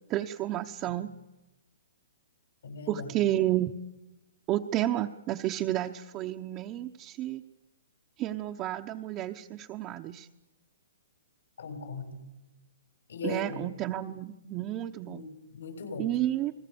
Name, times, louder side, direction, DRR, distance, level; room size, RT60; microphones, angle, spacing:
voice 1, 0.1-1.1 2.9-3.7 4.5-7.4 8.2-10.3 13.2-15.2 16.0-16.5, right 13 dB, 20° right, 2 dB, 0.8 m, -31 dB
voice 2, 2.6-3.1 11.6-12.2 13.1-13.7 15.1-16.1, left 4 dB, 80° left, 5 dB, 7.1 m, -39 dB
29.5 x 20.5 x 7.0 m, 1.0 s
hypercardioid pair, 160°, 0 cm